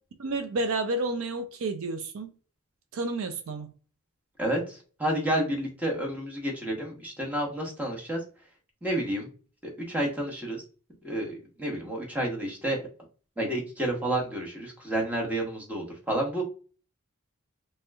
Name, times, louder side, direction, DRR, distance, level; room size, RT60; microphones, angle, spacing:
voice 1, 0.2-2.3 2.9-3.7, right 2 dB, 65° right, 0.4 m, -30 dB
voice 2, 4.4-8.2 8.8-9.3 9.6-10.6 11.0-12.9 13.4-16.4, right 1 dB, 5° right, 0.9 m, -30 dB
3.1 x 2.9 x 2.2 m
head